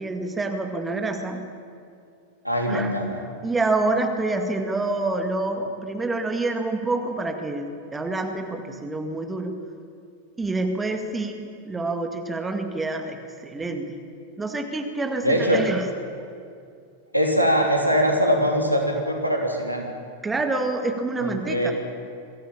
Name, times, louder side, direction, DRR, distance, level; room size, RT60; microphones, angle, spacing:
voice 1, 0.0-1.4 2.7-9.6 10.4-14.0 14.4-15.9 20.2-21.7, right 2 dB, 10° right, 5 dB, 2.0 m, -27 dB
voice 2, 2.4-3.1 15.2-15.7 17.1-19.8 21.2-21.7, equal, 90° right, 1 dB, 3.1 m, -22 dB
22.5 x 15.5 x 8.8 m, 2.4 s
figure-of-eight pair, 90°, 0 cm